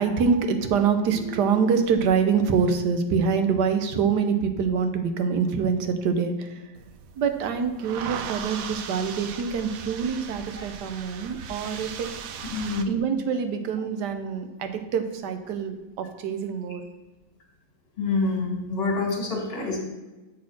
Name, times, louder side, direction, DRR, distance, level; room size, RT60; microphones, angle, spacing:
voice 1, 0.0-6.7 7.2-12.1 12.3-12.4 12.9-16.8, right 6 dB, 85° right, 7 dB, 1.4 m, -25 dB
sound 1, 6.8-12.8, right 7 dB, 70° right, 0.9 m, -38 dB
voice 2, 12.5-13.0 18.0-19.8, left 3 dB, 35° left, 0 dB, 1.9 m, -26 dB
7.0 x 4.2 x 6.1 m, 1.1 s
omnidirectional pair, 1.8 m